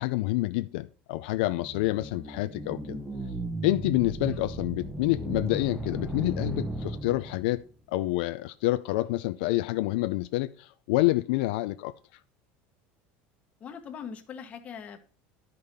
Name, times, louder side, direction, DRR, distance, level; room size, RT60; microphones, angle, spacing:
voice 1, 0.0-3.0 3.6-7.6 7.9-11.9, left 18 dB, 80° left, 0.4 m, -28 dB
sound 1, 1.3-7.6, right 1 dB, 10° right, 0.7 m, -36 dB
voice 2, 13.6-15.0, left 7 dB, 25° left, 1.1 m, -41 dB
11.0 x 5.3 x 4.2 m
cardioid pair, 160°, 5 cm